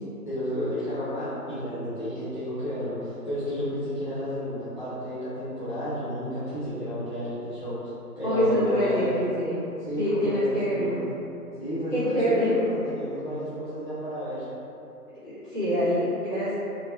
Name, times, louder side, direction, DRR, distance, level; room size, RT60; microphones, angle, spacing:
voice 1, 0.3-7.8 8.2-9.2 9.9-11.0 11.6-14.5, equal, 35° left, -14 dB, 0.4 m, -31 dB
voice 2, 8.2-9.6 10.0-11.0 11.9-12.5 15.2-16.5, equal, 10° left, -17 dB, 0.8 m, -25 dB
3.2 x 2.5 x 2.8 m, 2.8 s
figure-of-eight pair, 155°, 47 cm